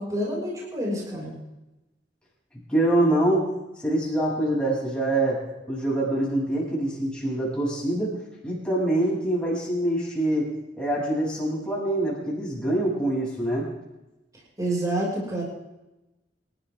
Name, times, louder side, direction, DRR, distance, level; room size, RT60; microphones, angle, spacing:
voice 1, 0.0-1.4 14.6-15.4, right 1 dB, 20° right, -5 dB, 6.3 m, -28 dB
voice 2, 2.7-3.5 3.8-10.5 10.8-13.7, right 1 dB, 5° left, -6 dB, 7.9 m, -25 dB
28.0 x 13.0 x 3.8 m, 0.97 s
head